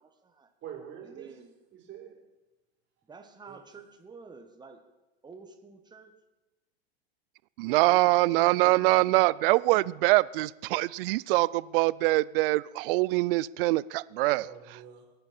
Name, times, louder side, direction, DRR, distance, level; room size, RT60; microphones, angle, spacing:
voice 1, 0.0-0.5 1.0-1.5 3.0-4.8 5.2-6.1 7.9-9.2 9.7-10.0, right 4 dB, 15° right, 5 dB, 1.5 m, -49 dB
voice 2, 0.6-1.3 1.7-2.1 3.5-3.6 14.3-15.1, right 9 dB, 35° right, 0 dB, 4.0 m, -45 dB
voice 3, 7.6-14.5, right 20 dB, 60° right, 21 dB, 0.5 m, -24 dB
22.5 x 9.0 x 4.4 m, 1.1 s
hypercardioid pair, 125°, 32 cm